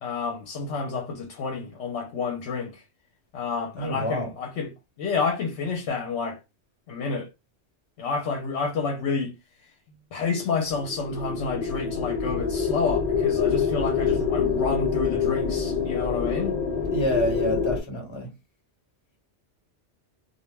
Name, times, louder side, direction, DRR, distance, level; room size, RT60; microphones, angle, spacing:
voice 1, 0.0-2.8 3.3-4.7 5.0-6.4 6.9-7.3 8.0-9.3 10.1-16.5, left 5 dB, 75° left, 0.9 m, -29 dB
voice 2, 3.8-4.3 16.9-18.3, left 1 dB, 25° left, 1.1 m, -27 dB
sound 1, 10.7-17.8, left 6 dB, 45° left, 0.6 m, -26 dB
2.3 x 2.1 x 3.1 m
omnidirectional pair, 1.2 m